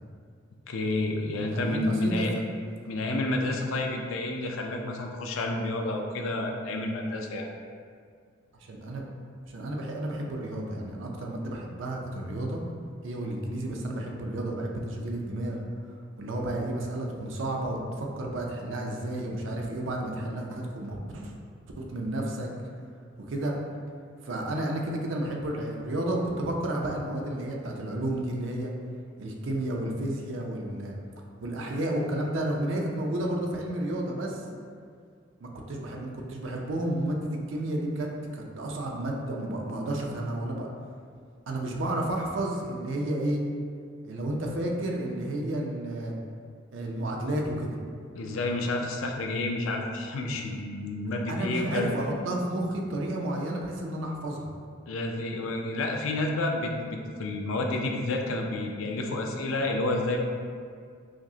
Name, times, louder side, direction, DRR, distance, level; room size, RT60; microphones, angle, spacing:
voice 1, 0.7-2.3 2.9-7.5 48.1-51.9 54.9-60.2, left 2 dB, 80° left, 2 dB, 0.4 m, -30 dB
voice 2, 1.5-2.2 8.6-9.1 9.5-12.6 13.0-15.6 16.2-21.3 21.8-22.5 23.3-23.6 24.2-28.7 29.2-30.9 31.4-34.5 35.4-40.7 41.5-43.4 44.0-46.1 46.7-47.8 51.3-54.5, right 1 dB, 70° right, 0 dB, 0.5 m, -31 dB
4.9 x 2.0 x 2.7 m, 2.2 s
head